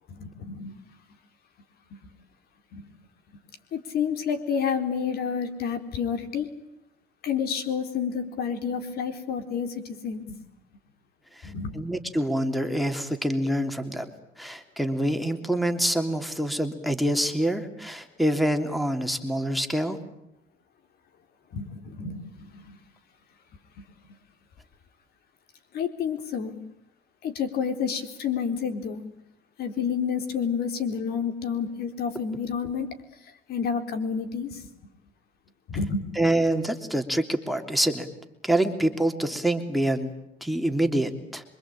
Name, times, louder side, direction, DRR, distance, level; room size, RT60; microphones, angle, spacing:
voice 1, 0.1-0.7 1.9-2.0 2.7-2.9 3.7-6.5 7.2-10.4 11.4-11.9 21.5-22.8 25.7-26.5 27.2-29.0 29.6-32.9 33.5-34.6 35.7-36.0, left 6 dB, 65° left, 8 dB, 4.0 m, -29 dB
voice 2, 11.4-14.1 14.4-20.0 36.1-38.1 38.4-40.1 40.4-41.4, right 1 dB, ahead, 8 dB, 3.2 m, -26 dB
26.5 x 24.5 x 8.9 m, 0.81 s
cardioid pair, 110°, 17 cm